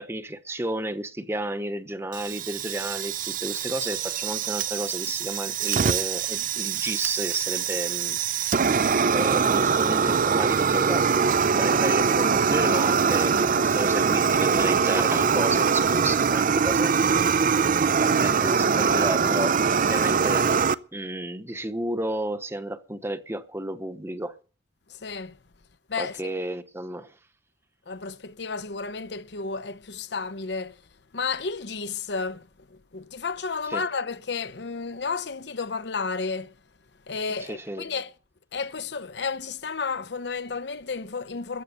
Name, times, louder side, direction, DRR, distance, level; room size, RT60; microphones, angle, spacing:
voice 1, 0.0-8.7 9.1-16.9 17.6-20.6 20.9-24.3 26.0-27.1 33.7-33.8 37.4-37.9, right 1 dB, 15° right, 1.0 m, -32 dB
Fire, 2.1-20.7, right 6 dB, 50° right, 0.6 m, -23 dB
voice 2, 24.9-25.4 25.9-26.2 27.9-30.8 31.1-36.5 37.1-38.1 38.5-41.6, left 4 dB, 70° left, 0.8 m, -32 dB
14.5 x 9.0 x 6.7 m
head